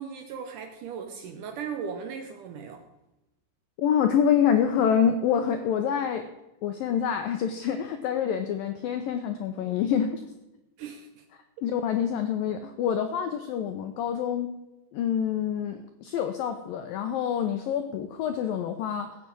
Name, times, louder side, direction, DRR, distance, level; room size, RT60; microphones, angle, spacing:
voice 1, 0.0-2.8 10.8-11.2, right 6 dB, 85° right, 5 dB, 1.8 m, -37 dB
voice 2, 3.8-6.3 6.6-10.2 11.6-14.5 14.9-19.2, left 8 dB, 85° left, 7 dB, 2.0 m, -26 dB
15.5 x 7.5 x 8.5 m, 0.92 s
omnidirectional pair, 5.2 m